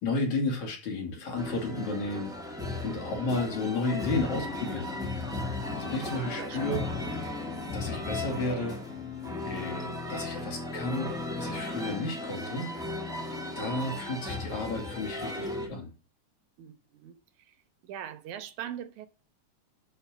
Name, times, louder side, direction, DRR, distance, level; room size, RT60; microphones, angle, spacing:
voice 1, 0.0-2.3 2.8-4.9 5.8-6.8 7.7-8.8 9.4-11.1 11.4-12.7 13.6-15.9, left 2 dB, 75° left, 3.7 m, -32 dB
sound 1, 1.4-15.7, left 2 dB, ahead, 1.5 m, -35 dB
voice 2, 6.4-7.0 16.6-17.2 17.9-19.1, right 10 dB, 85° right, 2.4 m, -41 dB
7.1 x 6.8 x 7.1 m
omnidirectional pair, 3.3 m